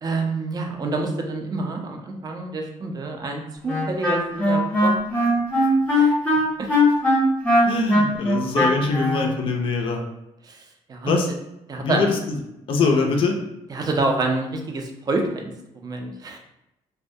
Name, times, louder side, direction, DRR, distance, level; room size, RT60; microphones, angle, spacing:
voice 1, 0.0-5.7 5.9-6.1 6.6-6.7 10.4-11.2 11.7-12.1 13.7-16.4, right 2 dB, 35° right, 3 dB, 0.4 m, -28 dB
Wind instrument woodwind instrument, 3.7-9.3, left 1 dB, 10° left, 0.7 m, -19 dB
voice 2, 7.7-10.0 11.0-11.3 11.8-12.2 12.7-13.4, left 4 dB, 50° left, 1 dB, 0.4 m, -22 dB
2.2 x 2.1 x 2.6 m, 0.86 s
cardioid pair, 100°, 12 cm